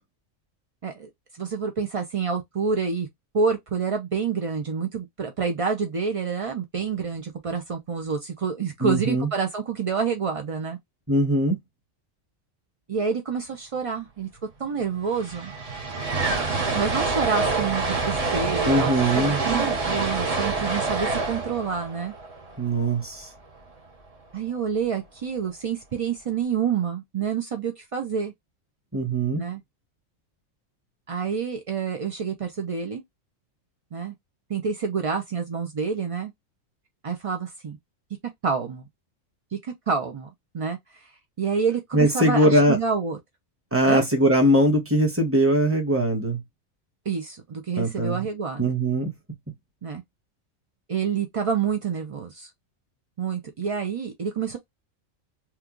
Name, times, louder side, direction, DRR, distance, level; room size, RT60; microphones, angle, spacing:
voice 1, 1.4-3.1 3.3-10.8 12.9-14.3 14.6-15.5 16.7-22.1 24.3-28.3 29.3-29.6 31.1-33.0 33.9-34.1 34.5-36.3 37.0-37.8 38.4-38.8 39.9-41.1 41.4-43.2 43.9-44.1 47.1-48.7 49.8-50.0 50.9-52.5 53.2-54.6, right 6 dB, 65° right, 0.3 m, -28 dB
voice 2, 8.8-9.3 11.1-11.6 18.7-19.4 22.6-23.3 28.9-29.4 41.9-42.8 43.7-46.4 47.8-48.2 48.6-49.1, right 1 dB, 10° right, 0.9 m, -21 dB
sound 1, 14.7-14.8 14.9-23.2, right 3 dB, 35° right, 0.7 m, -26 dB
3.0 x 2.3 x 3.6 m
omnidirectional pair, 1.4 m